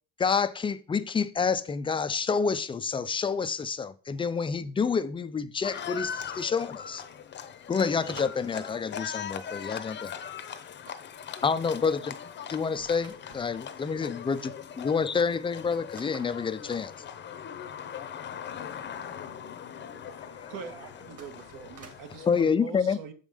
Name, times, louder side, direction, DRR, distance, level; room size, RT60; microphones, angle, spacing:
voice 1, 0.2-7.0 7.7-10.1 11.4-12.1 12.5-14.5 14.8-16.9 22.3-23.0, left 5 dB, 15° left, 0.4 m, -28 dB
Livestock farm animals working animals, 5.6-22.4, left 8 dB, 30° left, 0.8 m, -40 dB
sound 1, 8.0-9.6 10.8-13.7 14.4-14.5 14.7-14.8 15.4-17.6 21.0-22.2, right 4 dB, 45° right, 2.3 m, -52 dB
voice 2, 11.6-11.9 14.0-14.2 17.8-21.5, left 8 dB, 80° left, 1.2 m, -51 dB
voice 3, 20.5-23.1, right 7 dB, 70° right, 1.5 m, -43 dB
7.3 x 5.4 x 5.0 m
cardioid pair, 130°, 34 cm